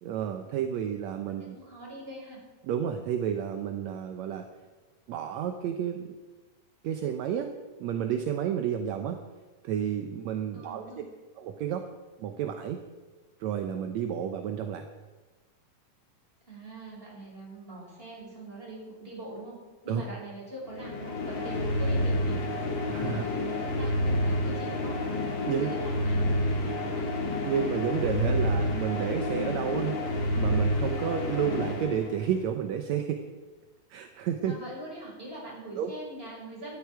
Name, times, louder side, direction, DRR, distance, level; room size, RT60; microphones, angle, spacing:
voice 1, 0.0-1.6 2.6-4.5 5.1-6.1 6.8-7.5 7.8-9.2 9.6-10.8 11.4-11.9 12.2-12.8 13.4-14.9 19.9-20.0 22.9-23.2 25.5-25.7 27.5-33.3 33.9-34.6 35.8-35.9, right 9 dB, 70° right, 6 dB, 1.8 m, -31 dB
voice 2, 1.5-2.4 10.5-11.1 16.5-19.6 19.8-22.4 23.0-25.0 25.5-27.1 34.5-36.8, right 1 dB, 15° right, -4 dB, 6.1 m, -42 dB
sound 1, 20.7-32.6, left 1 dB, 40° left, 2.2 m, -29 dB
18.5 x 13.0 x 4.7 m, 1.3 s
omnidirectional pair, 4.0 m